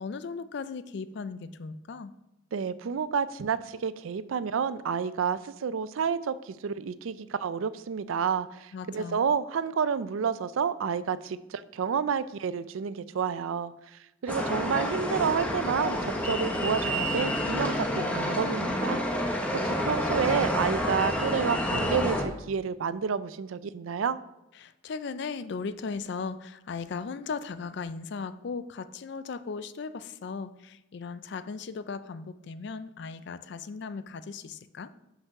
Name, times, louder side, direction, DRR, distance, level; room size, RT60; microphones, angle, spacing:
voice 1, 0.0-2.1 8.7-9.2 24.6-34.9, left 5 dB, 55° left, 13 dB, 0.4 m, -37 dB
voice 2, 2.5-19.0 19.5-24.2, right 6 dB, 80° right, 15 dB, 0.4 m, -30 dB
sound 1, 14.3-22.2, equal, 5° left, 0.9 m, -29 dB
6.0 x 5.4 x 5.8 m, 0.96 s
head